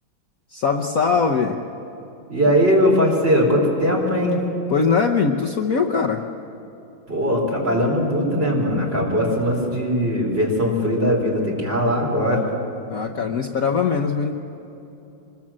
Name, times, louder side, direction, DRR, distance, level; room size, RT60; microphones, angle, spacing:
voice 1, 0.5-1.6 4.7-6.2 12.9-14.4, left 5 dB, 55° left, 2 dB, 1.2 m, -21 dB
voice 2, 2.3-4.4 7.1-12.5, equal, 30° right, -1 dB, 4.7 m, -20 dB
25.0 x 21.5 x 7.5 m, 3.0 s
omnidirectional pair, 2.2 m